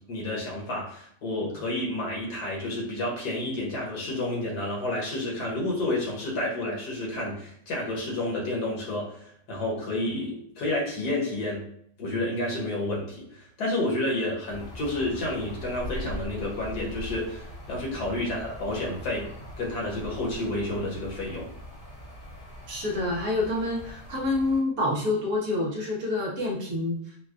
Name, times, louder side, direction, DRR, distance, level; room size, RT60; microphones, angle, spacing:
voice 1, 0.1-11.6 12.0-19.3 19.6-21.5, left 1 dB, 70° left, -3 dB, 1.6 m, -30 dB
sound 1, 14.5-24.6, equal, 85° left, 2.4 m, -41 dB
voice 2, 22.7-27.0, left 2 dB, 65° right, -2 dB, 1.0 m, -27 dB
4.7 x 2.1 x 2.4 m, 0.68 s
omnidirectional pair, 1.8 m